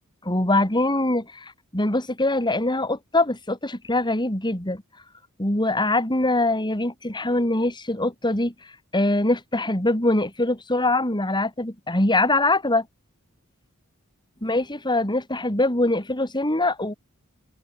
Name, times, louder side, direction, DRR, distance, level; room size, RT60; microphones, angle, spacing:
voice 1, 0.2-4.8 5.4-12.8 14.4-16.9, left 2 dB, 20° left, 4.6 m, -23 dB
open air
head